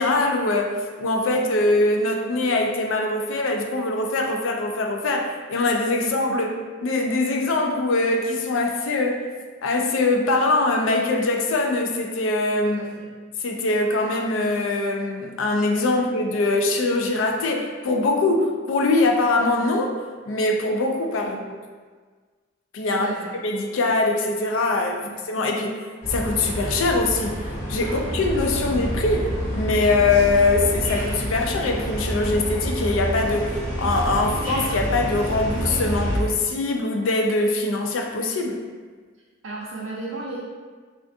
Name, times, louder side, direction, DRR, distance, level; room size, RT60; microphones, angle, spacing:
voice 1, 0.0-6.5 6.8-9.2 9.6-12.8 13.4-19.9 20.3-21.6 22.7-23.1 23.4-25.8 26.1-27.3 27.7-38.6, left 2 dB, 75° left, 3 dB, 0.4 m, -22 dB
voice 2, 12.6-13.1 15.9-16.1 21.2-21.5 22.9-23.3 25.0-25.1 27.8-28.1 28.6-28.8 39.4-40.4, right 3 dB, 80° right, -6 dB, 0.5 m, -36 dB
sound 1, 26.0-36.2, equal, 40° left, 0.8 m, -28 dB
3.3 x 2.4 x 2.6 m, 1.5 s
head